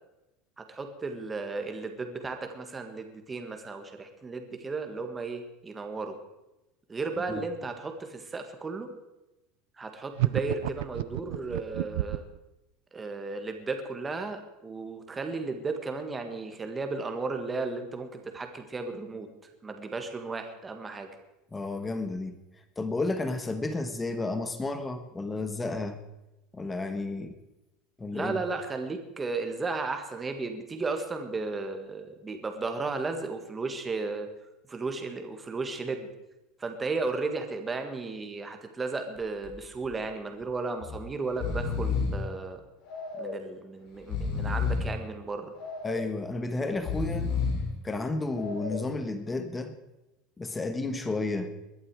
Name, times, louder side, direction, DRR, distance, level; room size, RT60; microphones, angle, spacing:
voice 1, 0.6-6.2 6.9-8.9 9.8-12.2 12.9-19.3 19.6-21.1 28.1-34.3 34.7-36.1 36.6-42.6 43.2-45.5, right 3 dB, 15° right, 6 dB, 1.6 m, -34 dB
sound 1, 10.2-12.4, right 16 dB, 80° right, 0.6 m, -30 dB
voice 2, 21.5-22.4 22.8-26.0 26.5-27.4 28.0-28.4 45.8-47.3 47.8-49.7 50.4-51.5, left 2 dB, 10° left, 9 dB, 1.3 m, -32 dB
Breathing, 39.2-39.5 39.8-39.9 40.8-41.0 41.3-42.3 42.9-43.5 44.0-45.0 45.6-46.2 46.7-47.7 48.3-48.9, left 5 dB, 55° left, 3.7 m, -31 dB
21.0 x 11.0 x 4.8 m, 0.97 s
supercardioid pair, 160°, 0 cm